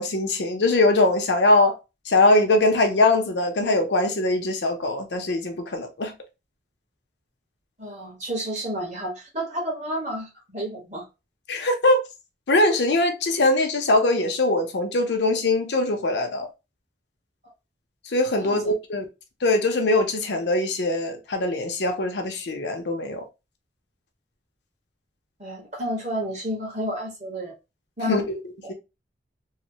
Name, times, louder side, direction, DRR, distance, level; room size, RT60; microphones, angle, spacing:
voice 1, 0.0-1.7 2.1-6.1 11.5-12.0 12.5-16.5 18.1-19.0 19.4-23.2 28.1-28.4 28.7-28.8, left 2 dB, 70° left, 0.6 m, -22 dB
voice 2, 7.8-11.1 18.4-18.7 25.4-27.5 28.0-28.2 28.6-28.7, equal, 40° right, 1.4 m, -31 dB
3.1 x 2.1 x 2.8 m
head